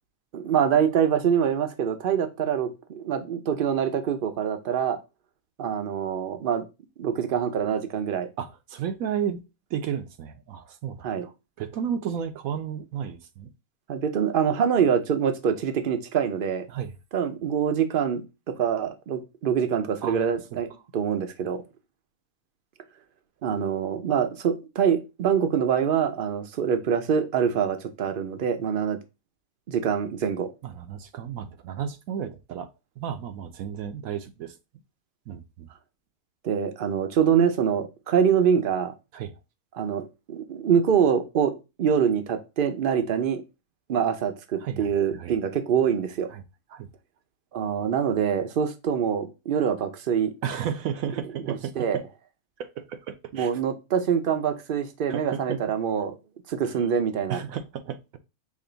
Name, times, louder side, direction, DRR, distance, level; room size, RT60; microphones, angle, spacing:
voice 1, 0.3-5.0 5.6-6.7 7.0-8.3 11.0-11.3 13.9-16.7 17.1-20.7 20.9-21.6 23.4-29.0 29.7-30.5 36.4-38.9 39.7-43.4 43.9-46.3 47.5-50.3 51.5-52.0 53.3-56.2 56.5-57.4, right 7 dB, 55° right, 0.6 m, -25 dB
voice 2, 8.4-9.4 9.7-13.5 16.7-16.9 20.0-20.3 30.6-32.7 33.0-34.5 35.3-35.7 39.1-39.3 44.6-45.3 46.3-46.4 46.7-46.9 50.4-52.0 52.6-53.5 55.1-55.6 57.3-58.2, right 8 dB, 75° right, 1.0 m, -33 dB
5.2 x 2.6 x 3.9 m
omnidirectional pair, 1.5 m